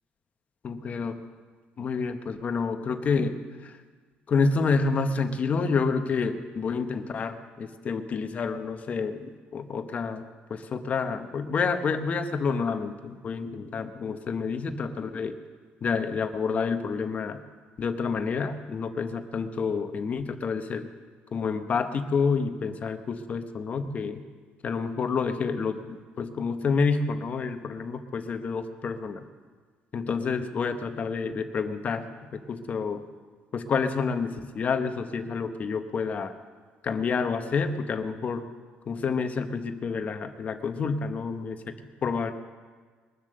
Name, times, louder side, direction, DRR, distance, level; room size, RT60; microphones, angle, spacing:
voice 1, 0.6-1.2 1.8-3.8 4.3-10.2 10.5-15.4 15.8-17.4 17.8-20.9 21.3-24.2 24.6-29.2 29.9-32.1 32.3-33.0 33.5-36.4 36.8-38.5 38.9-41.7 42.0-42.3, left 5 dB, 40° left, 8 dB, 1.1 m, -29 dB
22.0 x 7.4 x 6.7 m, 1.5 s
cardioid pair, 120°, 4 cm